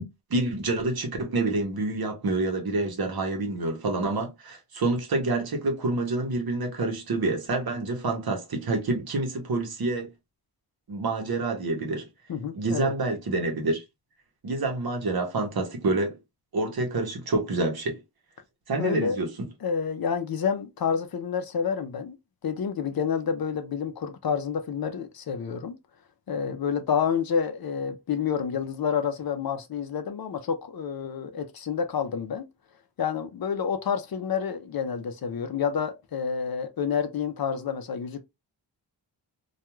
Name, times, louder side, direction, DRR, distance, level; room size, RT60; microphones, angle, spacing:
voice 1, 0.0-10.1 10.9-12.0 12.5-13.8 14.4-16.2 16.5-18.0 18.7-19.3, right 2 dB, 55° right, 0.8 m, -27 dB
voice 2, 12.3-12.9 18.8-19.2 19.6-22.2 22.4-25.7 26.3-32.4 33.0-38.2, left 7 dB, 55° left, 0.5 m, -29 dB
2.3 x 2.3 x 3.0 m
wide cardioid pair, 140°, 43 cm